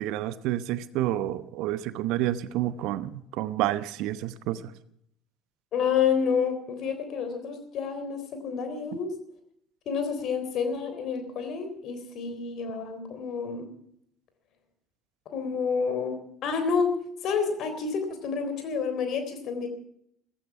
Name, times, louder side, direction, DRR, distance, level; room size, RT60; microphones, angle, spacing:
voice 1, 0.0-4.6, right 14 dB, 60° right, 15 dB, 0.9 m, -29 dB
voice 2, 5.7-9.1 9.9-13.7 15.3-16.9 17.2-19.7, left 6 dB, 55° left, 8 dB, 3.8 m, -29 dB
16.0 x 15.0 x 5.9 m, 0.71 s
figure-of-eight pair, 60°, 0 cm